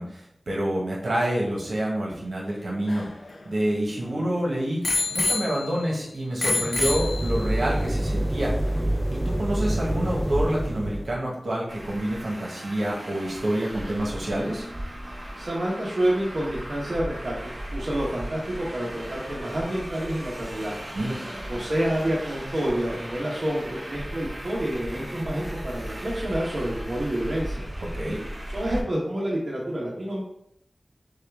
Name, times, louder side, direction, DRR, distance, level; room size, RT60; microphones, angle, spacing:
voice 1, 0.0-3.1 3.4-8.5 9.1-14.6 20.9-21.2 27.9-28.2, right 1 dB, 80° right, -3 dB, 1.2 m, -27 dB
Bicycle bell, 2.5-4.2 4.8-6.0 6.4-7.7 8.4-8.5, left 3 dB, 75° left, 0.6 m, -28 dB
sound 1, 6.8-11.2, right 1 dB, 15° right, 0.5 m, -27 dB
Traffic noise roadway noise, 11.7-28.8, right 1 dB, 40° right, 1.1 m, -37 dB
voice 2, 15.4-20.8 21.5-27.7 28.5-30.2, right 1 dB, 60° right, -5 dB, 1.0 m, -28 dB
6.3 x 2.4 x 3.5 m, 0.73 s
wide cardioid pair, 60°, 0 cm